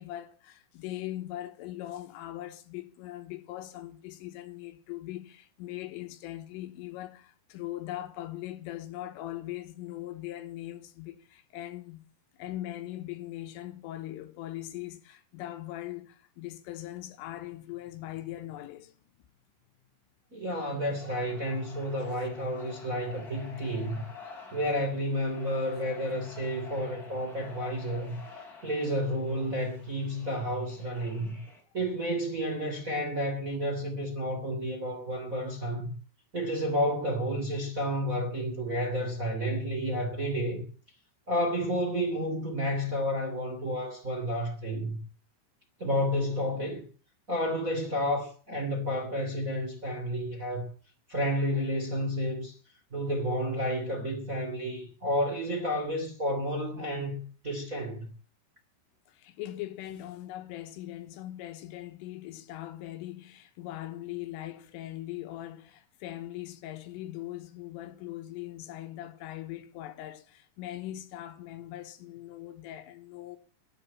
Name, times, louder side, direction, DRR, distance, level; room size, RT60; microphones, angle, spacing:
voice 1, 0.0-12.0 12.4-19.0 59.1-73.4, left 14 dB, 80° left, 3.6 m, -40 dB
voice 2, 20.3-24.0 24.5-28.2 28.6-31.4 31.7-35.9 36.3-40.6 41.3-45.0 45.8-46.8 47.3-50.7 51.1-52.6 52.9-57.2 57.4-58.1, equal, 25° right, 2.2 m, -31 dB
sound 1, 20.5-31.6, left 4 dB, 20° left, 3.5 m, -49 dB
13.0 x 10.0 x 8.7 m
omnidirectional pair, 6.0 m